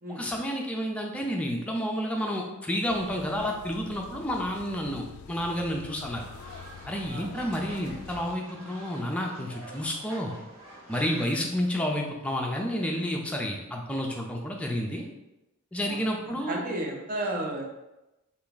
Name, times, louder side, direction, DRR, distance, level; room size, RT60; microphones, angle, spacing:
voice 1, 0.1-6.2 6.9-10.3 10.9-15.0 15.7-16.6, equal, 5° left, 0 dB, 0.4 m, -30 dB
sound 1, 2.9-8.3, left 6 dB, 80° left, 0.3 m, -46 dB
Fowl, 6.0-11.3, right 1 dB, 80° right, 1.5 m, -47 dB
voice 2, 15.8-17.6, right 1 dB, 40° right, 1 dB, 0.6 m, -33 dB
3.4 x 2.5 x 3.9 m, 0.97 s
head